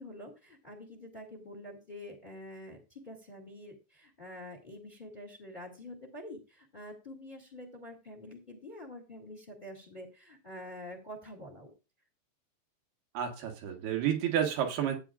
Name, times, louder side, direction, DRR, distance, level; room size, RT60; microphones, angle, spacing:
voice 1, 0.0-11.7, left 1 dB, 65° left, 3 dB, 0.4 m, -47 dB
voice 2, 13.1-15.0, right 9 dB, 70° right, 3 dB, 3.4 m, -30 dB
14.5 x 8.6 x 2.5 m, 0.29 s
omnidirectional pair, 4.9 m